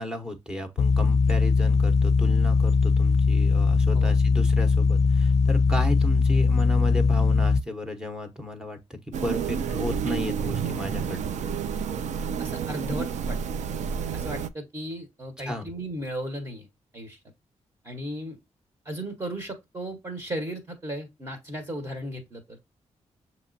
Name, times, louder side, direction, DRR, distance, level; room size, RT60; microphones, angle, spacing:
voice 1, 0.0-11.4 15.5-15.7, left 1 dB, 5° right, 0.8 m, -33 dB
sound 1, 0.8-7.6, left 4 dB, 60° left, 0.4 m, -20 dB
sound 2, 9.1-14.5, right 6 dB, 80° right, 0.4 m, -30 dB
voice 2, 12.4-13.4 14.1-16.7 16.9-17.2 17.8-18.4 18.8-22.6, right 1 dB, 25° right, 1.1 m, -35 dB
6.7 x 3.0 x 2.5 m
wide cardioid pair, 135°, 12 cm